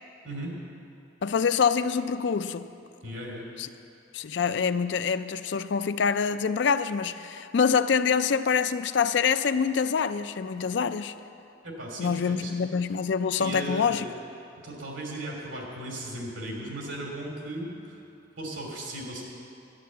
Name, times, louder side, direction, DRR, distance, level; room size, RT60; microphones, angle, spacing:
voice 1, 0.2-0.5 3.0-3.5 11.6-12.5 13.4-14.1 14.6-18.0 18.4-19.2, right 1 dB, 90° right, -1 dB, 2.9 m, -36 dB
voice 2, 1.2-2.7 3.6-3.7 4.1-11.1 12.0-14.0, left 6 dB, 65° left, 12 dB, 0.4 m, -25 dB
11.0 x 9.5 x 7.6 m, 2.7 s
head